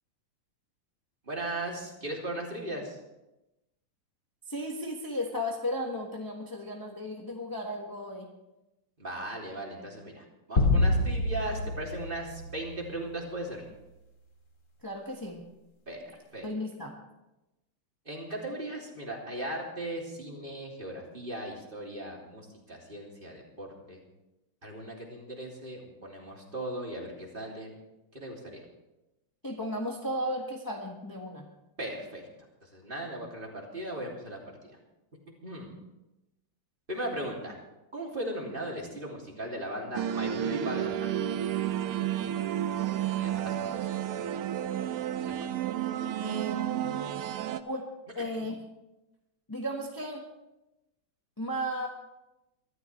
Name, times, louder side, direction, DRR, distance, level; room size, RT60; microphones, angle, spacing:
voice 1, 1.2-3.0 9.0-13.6 15.9-16.4 18.0-24.0 24.6-27.7 28.1-28.6 31.8-32.2 32.6-34.4 34.7-34.8 35.4-35.7 36.9-37.6 37.9-41.2 43.2-43.9 45.3-45.4, right 1 dB, 25° right, -2 dB, 3.1 m, -38 dB
voice 2, 4.5-8.3 14.8-15.4 16.4-16.9 29.4-31.5 46.2-46.6 47.6-47.9 48.1-48.6 49.5-50.2 51.4-51.9, equal, 10° left, -1 dB, 1.4 m, -34 dB
sound 1, 10.6-13.1, left 2 dB, 35° left, 2.4 m, -27 dB
sound 2, 39.9-47.6, right 10 dB, 85° right, 1.6 m, -31 dB
24.5 x 13.0 x 3.4 m, 0.96 s
omnidirectional pair, 2.4 m